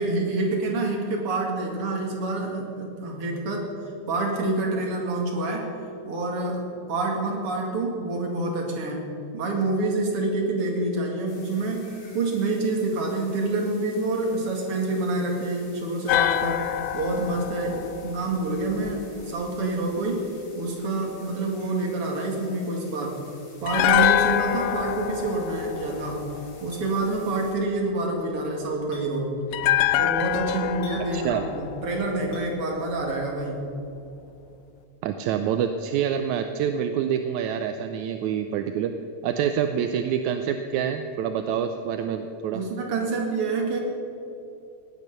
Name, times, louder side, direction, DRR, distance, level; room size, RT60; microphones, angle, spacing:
voice 1, 0.0-3.8 4.1-5.7 6.0-9.1 9.3-11.9 12.1-16.6 16.9-20.3 20.6-23.2 23.6-26.3 26.6-29.4 30.0-33.7 42.5-43.8, right 2 dB, 50° right, 0 dB, 3.0 m, -27 dB
sound 1, 11.3-27.5, left 3 dB, 60° left, 3.8 m, -52 dB
sound 2, 16.1-19.3 23.7-26.9 29.5-32.7 33.0-33.1, left 12 dB, 80° left, 1.6 m, -26 dB
Chink clink, 26.7-26.9 28.9-29.1 30.8-31.0 32.3-32.5, left 3 dB, 40° left, 4.0 m, -44 dB
voice 2, 31.1-31.4 35.0-38.9 39.2-42.6, right 8 dB, 80° right, 7 dB, 2.0 m, -26 dB
17.5 x 9.4 x 6.7 m, 2.7 s
omnidirectional pair, 3.4 m